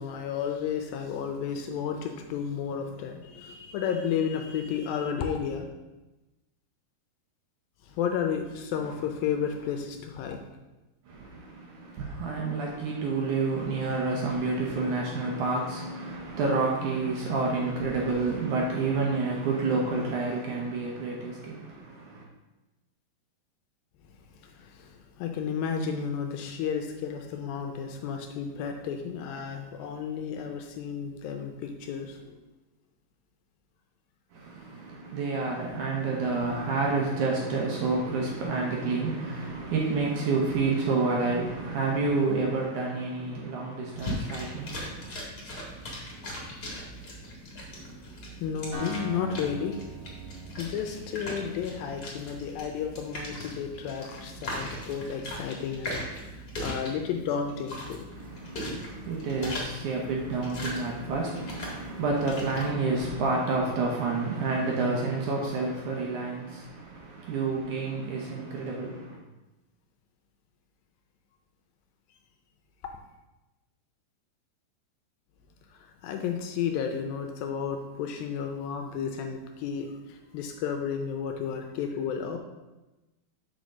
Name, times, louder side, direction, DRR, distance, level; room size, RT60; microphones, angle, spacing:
voice 1, 0.0-5.7 7.9-10.4 24.5-32.3 48.0-48.1 48.4-49.8 50.3-58.1 76.0-82.4, left 7 dB, 80° left, 4 dB, 2.3 m, -32 dB
voice 2, 11.1-22.3 34.3-45.2 58.1-69.2, right 3 dB, 65° right, -1 dB, 2.1 m, -29 dB
sound 1, 43.9-62.7, equal, 35° left, 1.6 m, -39 dB
Acoustic guitar, 48.7-52.6, right 4 dB, 25° right, 2.0 m, -43 dB
6.8 x 5.1 x 6.3 m, 1.1 s
omnidirectional pair, 4.5 m